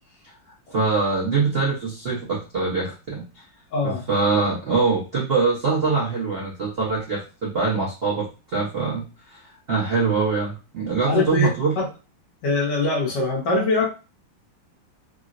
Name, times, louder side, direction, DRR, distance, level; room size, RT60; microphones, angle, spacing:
voice 1, 0.7-3.4 3.8-11.7, right 4 dB, 60° right, -5 dB, 0.6 m, -24 dB
voice 2, 3.7-4.0 11.0-11.9 12.4-13.9, left 3 dB, 65° left, -1 dB, 1.3 m, -23 dB
3.6 x 2.0 x 2.5 m, 0.30 s
omnidirectional pair, 2.2 m